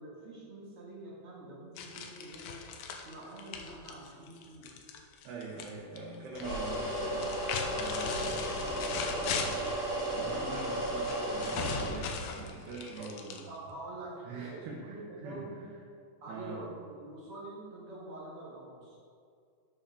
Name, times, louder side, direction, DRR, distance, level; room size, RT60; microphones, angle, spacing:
voice 1, 0.0-2.6 3.0-4.7 7.8-8.6 13.5-15.7 16.2-19.0, right 2 dB, 45° right, -6 dB, 2.2 m, -46 dB
sound 1, 1.8-5.7 6.0-6.6 7.1-9.8 11.1-13.7, left 6 dB, 85° left, 2.9 m, -38 dB
voice 2, 5.2-7.4 7.7-9.0 9.2-13.5 14.2-15.7 16.3-16.6, right 4 dB, 75° right, -4 dB, 3.3 m, -44 dB
sound 2, 6.3-11.8, right 1 dB, 35° left, 3.0 m, -34 dB
13.0 x 6.4 x 4.9 m, 2.3 s
omnidirectional pair, 4.8 m